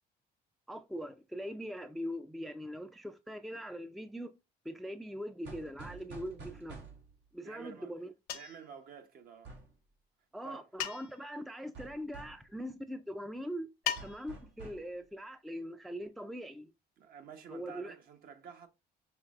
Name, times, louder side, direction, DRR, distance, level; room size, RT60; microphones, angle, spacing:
voice 1, 0.7-4.3 4.7-6.8 7.3-8.1 10.3-13.7 14.0-16.7 17.5-17.9, equal, ahead, 0.4 m, -41 dB
sound 1, 5.5-7.2 9.5-9.7 11.8-12.5 14.0-14.9, right 3 dB, 85° right, 1.8 m, -49 dB
voice 2, 7.4-7.9 8.3-9.6 10.4-10.6 17.0-18.7, right 7 dB, 60° right, 0.9 m, -50 dB
sound 2, 8.3-8.7 10.8-11.3 13.9-14.5, left 11 dB, 70° left, 0.7 m, -37 dB
5.8 x 3.1 x 2.4 m
cardioid pair, 110°, 17 cm